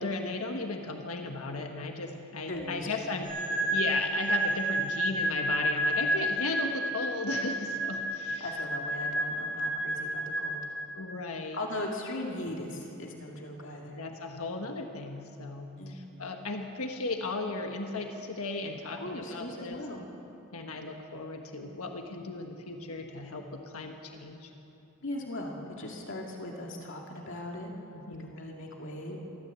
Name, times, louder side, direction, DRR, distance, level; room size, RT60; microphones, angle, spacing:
voice 1, 0.0-3.3 3.7-8.5 10.9-11.6 14.0-19.8 20.5-24.5 27.9-28.3, left 3 dB, 85° left, 3 dB, 1.5 m, -36 dB
voice 2, 2.5-3.8 8.4-10.6 11.5-14.0 15.8-16.0 19.0-20.1 25.0-27.7 28.2-29.2, left 1 dB, 60° left, 0 dB, 2.4 m, -39 dB
sound 1, 3.2-10.9, right 1 dB, 10° right, 6.3 m, -30 dB
23.0 x 14.5 x 8.2 m, 3.0 s
head